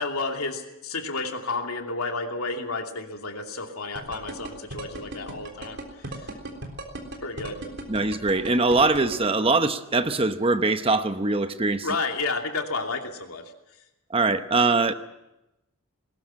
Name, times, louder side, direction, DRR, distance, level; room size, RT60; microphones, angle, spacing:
voice 1, 0.0-5.8 6.0-6.3 7.2-7.6 11.8-13.4, left 3 dB, 85° left, 3 dB, 2.7 m, -31 dB
sound 1, 4.0-9.2, right 2 dB, 50° right, 3.6 m, -36 dB
voice 2, 7.9-11.9 14.1-14.9, right 3 dB, 25° right, 9 dB, 0.9 m, -22 dB
21.0 x 18.5 x 7.6 m, 0.92 s
head